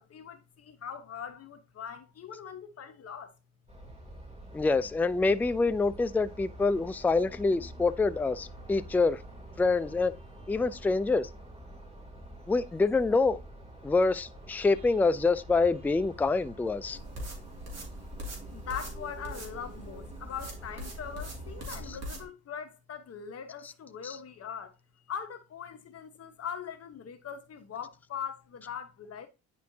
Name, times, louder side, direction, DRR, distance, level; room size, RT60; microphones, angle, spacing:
voice 1, 0.0-3.3 18.5-24.8 25.1-29.3, left 7 dB, 55° left, 1.0 m, -41 dB
sound 1, 3.7-21.9, right 1 dB, 20° right, 3.2 m, -47 dB
voice 2, 4.5-9.2 9.6-10.1 10.5-11.3 12.5-13.4 13.8-17.0 24.0-24.2, left 3 dB, 5° left, 0.3 m, -26 dB
sound 2, 16.9-22.2, right 1 dB, 60° right, 2.7 m, -42 dB
9.4 x 4.4 x 2.8 m
cardioid pair, 90°, 30 cm